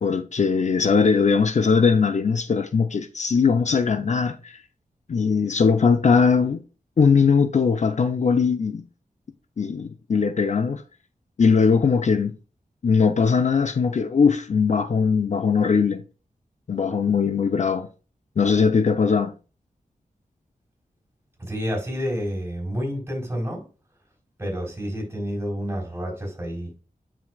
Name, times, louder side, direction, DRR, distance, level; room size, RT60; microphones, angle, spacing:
voice 1, 0.0-4.6 5.1-6.6 7.0-8.8 9.6-10.8 11.4-12.3 12.8-16.0 16.7-17.9 18.4-19.3, left 5 dB, 55° left, 0.6 m, -20 dB
voice 2, 21.4-23.6 24.4-26.7, equal, 15° right, 3.9 m, -29 dB
9.4 x 6.0 x 2.4 m
wide cardioid pair, 95°, 15 cm